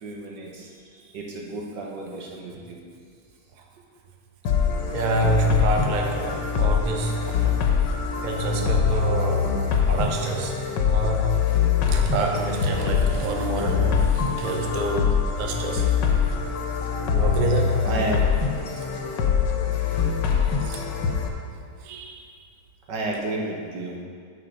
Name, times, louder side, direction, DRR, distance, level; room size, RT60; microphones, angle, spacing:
voice 1, 0.0-2.8 17.8-18.2 22.9-24.0, right 2 dB, 75° right, -1 dB, 1.9 m, -32 dB
sound 1, 4.5-21.3, left 7 dB, 80° left, 1.5 m, -24 dB
voice 2, 4.9-7.6 8.2-9.6 9.9-11.4 11.9-15.9 17.1-17.9 18.7-18.9 20.6-20.9 21.8-22.3, right 2 dB, 45° right, 2 dB, 0.6 m, -27 dB
9.5 x 4.5 x 6.6 m, 2.1 s
omnidirectional pair, 1.9 m